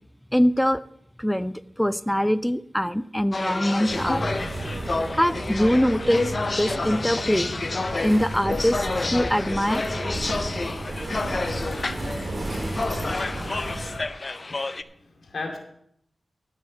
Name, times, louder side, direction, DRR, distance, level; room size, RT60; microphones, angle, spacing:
voice 1, 0.3-0.8 1.2-4.3 5.1-7.5 8.0-9.8, equal, 5° left, 15 dB, 0.4 m, -23 dB
sound 1, 3.3-14.8, left 3 dB, 50° left, 0.6 m, -29 dB
sound 2, 3.8-14.0, right 1 dB, 55° right, 4.7 m, -33 dB
voice 2, 14.6-15.6, left 3 dB, 90° left, 2 dB, 2.3 m, -36 dB
13.5 x 7.4 x 5.3 m, 0.72 s
wide cardioid pair, 65°, 0 cm